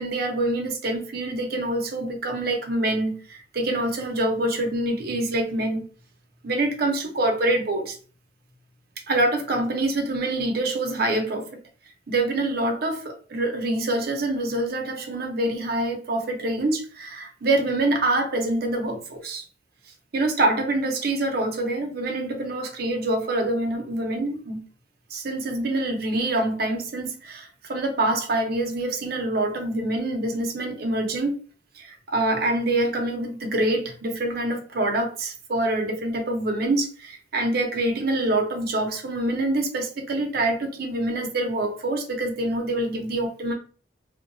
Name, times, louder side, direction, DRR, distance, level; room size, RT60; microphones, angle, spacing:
voice 1, 0.0-5.9 6.4-8.0 9.1-11.5 12.1-19.4 20.1-24.6 25.1-31.4 31.7-43.5, right 2 dB, 60° right, 0.7 m, -25 dB
2.7 x 2.2 x 2.6 m
head